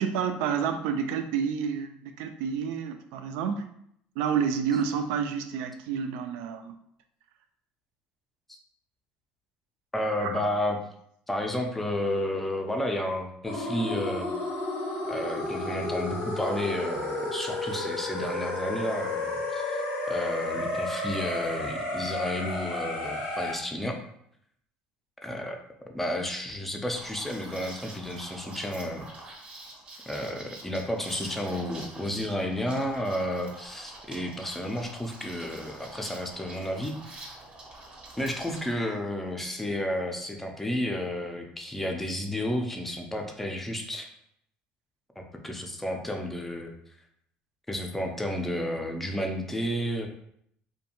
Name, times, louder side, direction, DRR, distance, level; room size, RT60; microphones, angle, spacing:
voice 1, 0.0-3.7 4.2-6.7 10.2-10.4, right 7 dB, 85° right, 7 dB, 0.3 m, -29 dB
voice 2, 9.9-10.8 11.3-14.3 15.1-24.0 25.2-25.6 25.9-29.1 30.1-37.4 38.2-44.1 45.4-46.7 47.7-50.1, left 1 dB, 5° left, 2 dB, 0.4 m, -32 dB
sound 1, 13.4-23.6, left 2 dB, 85° left, 0.8 m, -32 dB
Liquid, 26.9-38.7, right 2 dB, 30° right, 0.6 m, -46 dB
2.5 x 2.2 x 2.8 m, 0.71 s
cardioid pair, 120°, 3 cm